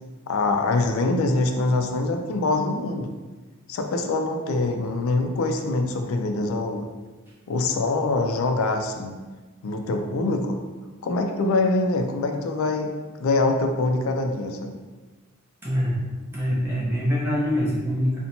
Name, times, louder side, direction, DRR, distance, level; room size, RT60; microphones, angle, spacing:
voice 1, 0.3-3.1 3.7-6.8 7.5-9.2 9.6-10.6 11.0-12.9 13.2-14.8, left 2 dB, 70° left, 5 dB, 0.3 m, -24 dB
voice 2, 15.6-16.0 16.3-18.2, equal, 10° right, -8 dB, 0.7 m, -24 dB
2.8 x 2.1 x 2.5 m, 1.3 s
head